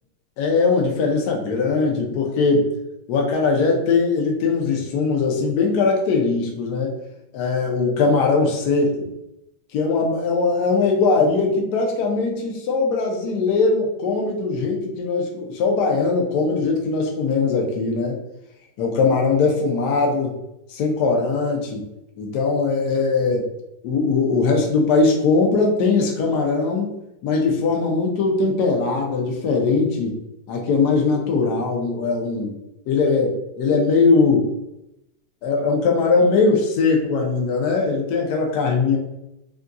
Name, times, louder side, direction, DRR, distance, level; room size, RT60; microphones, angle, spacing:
voice 1, 0.4-2.7 3.1-7.0 7.3-9.1 9.7-18.2 18.8-20.3 20.7-21.8 22.2-23.5 23.8-26.9 27.2-30.1 30.5-32.5 32.9-34.5 35.4-39.0, left 4 dB, 70° left, 1 dB, 1.1 m, -20 dB
3.6 x 2.6 x 2.2 m, 0.88 s
omnidirectional pair, 2.0 m